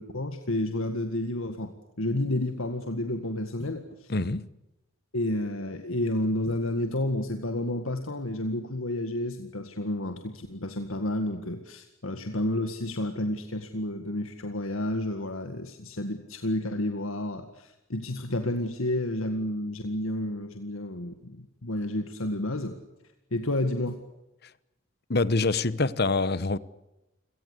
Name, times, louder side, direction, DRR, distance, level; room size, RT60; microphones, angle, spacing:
voice 1, 0.0-4.1 5.1-22.8 23.3-24.0, left 1 dB, 80° left, 1.9 m, -30 dB
voice 2, 4.1-4.5 25.1-26.6, left 3 dB, 50° left, 1.0 m, -25 dB
29.0 x 18.5 x 8.3 m
head